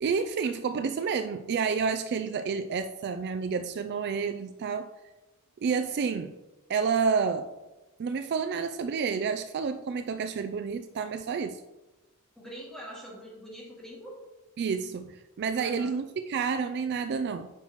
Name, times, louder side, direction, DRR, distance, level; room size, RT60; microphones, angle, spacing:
voice 1, 0.0-4.9 5.6-6.3 6.7-7.5 8.0-11.6 14.6-17.5, right 5 dB, 50° right, 8 dB, 0.3 m, -29 dB
voice 2, 12.4-14.2 15.6-16.0, equal, ahead, -5 dB, 2.2 m, -44 dB
8.9 x 5.6 x 3.0 m, 1.1 s
head